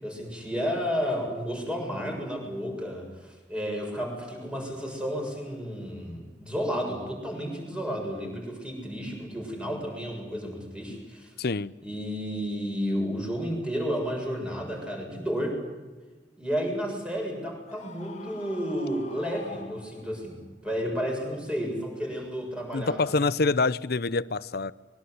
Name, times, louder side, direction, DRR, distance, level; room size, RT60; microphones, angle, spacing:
voice 1, 0.0-11.3 11.8-15.6 16.4-20.4 20.6-23.1, equal, 5° right, 7.1 m, -32 dB
voice 2, 11.4-11.7 22.7-24.7, left 3 dB, 60° left, 0.7 m, -26 dB
Screaming, 17.7-20.4, left 3 dB, 40° left, 1.9 m, -46 dB
24.5 x 22.5 x 8.1 m
head